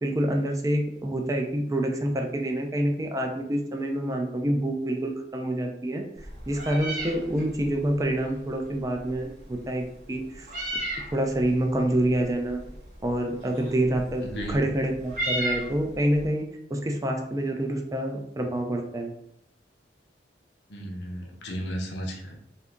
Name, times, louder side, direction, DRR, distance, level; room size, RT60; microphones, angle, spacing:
voice 1, 0.0-6.1 6.5-10.5 11.1-12.6 13.0-19.1, right 1 dB, 20° right, 3 dB, 0.3 m, -27 dB
Meow, 6.2-16.3, right 1 dB, 45° right, 0.9 m, -36 dB
voice 2, 14.2-14.6 20.7-22.4, equal, 75° left, 1 dB, 0.7 m, -34 dB
2.7 x 2.4 x 3.4 m, 0.76 s
head